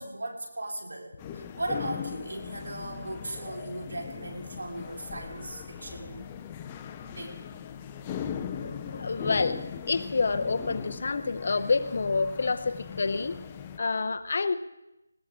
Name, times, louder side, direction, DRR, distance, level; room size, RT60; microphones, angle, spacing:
voice 1, 0.0-6.3 7.1-7.4, right 2 dB, 85° right, 0 dB, 4.3 m, -37 dB
sound 1, 1.2-13.8, left 8 dB, 10° left, 0.5 m, -39 dB
voice 2, 8.5-13.4 13.8-14.5, left 4 dB, 40° left, 10 dB, 0.8 m, -28 dB
20.0 x 18.0 x 3.7 m, 0.92 s
figure-of-eight pair, 175°, 0 cm